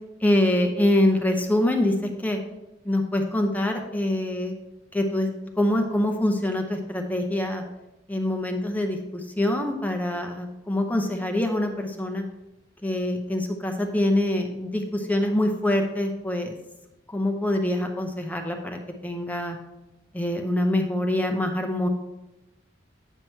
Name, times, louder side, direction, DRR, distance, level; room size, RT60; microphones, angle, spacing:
voice 1, 0.2-2.4 2.8-4.5 4.9-5.3 5.6-7.6 8.1-12.2 12.8-16.6 17.1-19.6 20.1-21.9, left 1 dB, 10° left, 3 dB, 0.6 m, -25 dB
9.0 x 5.9 x 4.5 m, 0.99 s
head